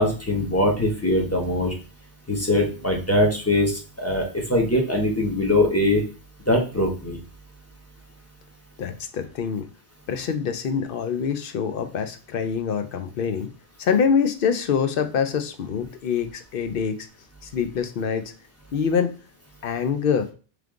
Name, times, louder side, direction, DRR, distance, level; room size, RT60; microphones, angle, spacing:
voice 1, 0.0-1.7 2.3-6.0 6.5-7.2, left 1 dB, 15° left, 0 dB, 0.9 m, -22 dB
voice 2, 8.8-9.7 10.1-13.5 13.8-17.1 17.4-18.3 18.7-19.2 19.6-20.3, left 6 dB, 60° left, 8 dB, 0.7 m, -25 dB
3.3 x 3.2 x 3.6 m, 0.37 s
omnidirectional pair, 1.2 m